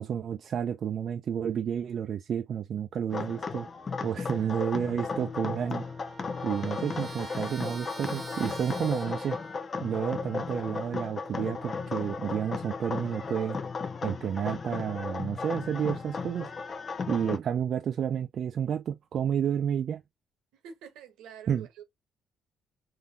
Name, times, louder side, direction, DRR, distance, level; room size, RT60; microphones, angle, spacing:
voice 1, 0.0-3.7 4.0-5.8 6.4-9.4 9.8-13.6 14.0-16.5 17.1-20.0 21.5-21.7, right 8 dB, 60° right, 0.4 m, -30 dB
sound 1, 3.1-17.4, left 4 dB, 45° left, 0.5 m, -35 dB
voice 2, 4.2-4.8 20.5-21.8, right 7 dB, 85° right, 1.0 m, -48 dB
Trumpet, 5.3-9.7, right 3 dB, 30° right, 1.0 m, -46 dB
3.7 x 2.7 x 2.4 m
supercardioid pair, 60°, 0 cm